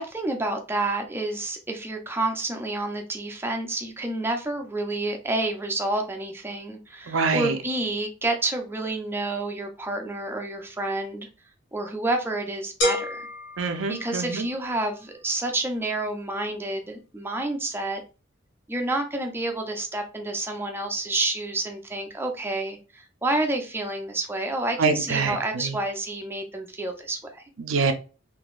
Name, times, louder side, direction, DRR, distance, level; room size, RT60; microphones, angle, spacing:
voice 1, 0.0-11.3 11.7-13.3 13.9-18.0 18.7-27.4, right 2 dB, 10° right, 0.5 m, -29 dB
voice 2, 7.1-7.5 13.6-14.4 24.8-25.7 27.6-27.9, right 4 dB, 80° right, 0.6 m, -25 dB
sound 1, 12.8-14.7, left 1 dB, 70° left, 1.2 m, -29 dB
3.8 x 2.7 x 2.4 m
head